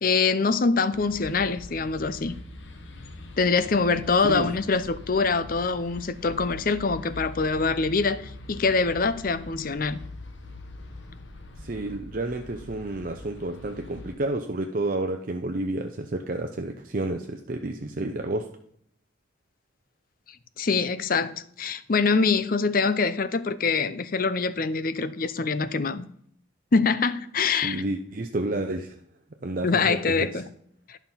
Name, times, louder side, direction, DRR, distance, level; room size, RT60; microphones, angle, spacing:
voice 1, 0.0-2.3 3.4-10.0 20.6-26.1 26.7-27.8 29.6-30.5 30.9-31.0, left 4 dB, 45° left, 0.5 m, -24 dB
sound 1, 0.9-14.2, left 2 dB, 75° left, 1.2 m, -43 dB
voice 2, 11.6-18.5 27.6-29.0 29.4-30.4, right 2 dB, 45° right, 0.6 m, -30 dB
11.5 x 6.0 x 5.6 m
head